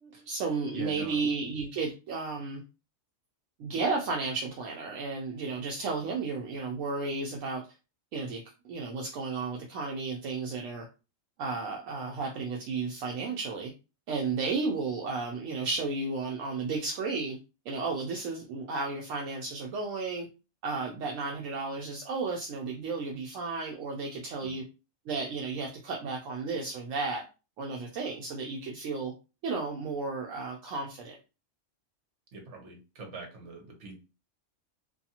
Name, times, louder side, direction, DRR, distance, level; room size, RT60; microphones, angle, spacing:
voice 1, 0.0-2.6 3.6-7.6 8.1-8.4 8.7-10.9 11.4-13.7 14.1-17.4 17.7-20.3 20.6-24.6 25.1-27.2 27.6-29.1 29.4-31.2, right 4 dB, 80° right, 1 dB, 0.9 m, -33 dB
voice 2, 0.7-1.2 6.0-6.1 24.4-24.6 32.3-33.9, right 2 dB, 60° right, 2 dB, 1.2 m, -43 dB
2.6 x 2.4 x 2.7 m, 0.30 s
omnidirectional pair, 1.4 m